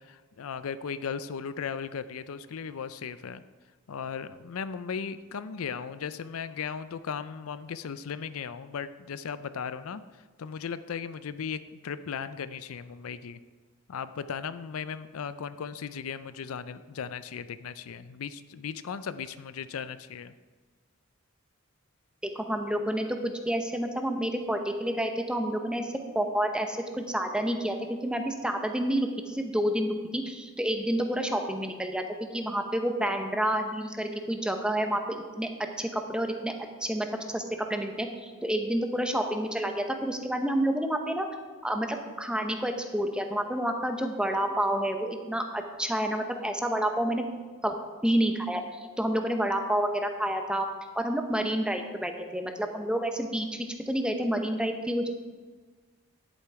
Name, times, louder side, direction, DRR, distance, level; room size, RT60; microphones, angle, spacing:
voice 1, 0.0-3.4 3.9-10.0 10.4-13.4 13.9-20.3, left 6 dB, 80° left, 13 dB, 0.4 m, -37 dB
voice 2, 22.3-27.8 28.0-35.5 35.8-36.5 36.8-37.4 37.7-41.3 41.6-47.2 47.6-47.7 48.0-48.6 49.0-50.7 50.9-55.1, right 1 dB, 5° right, 5 dB, 0.8 m, -29 dB
10.5 x 8.3 x 4.7 m, 1.4 s
head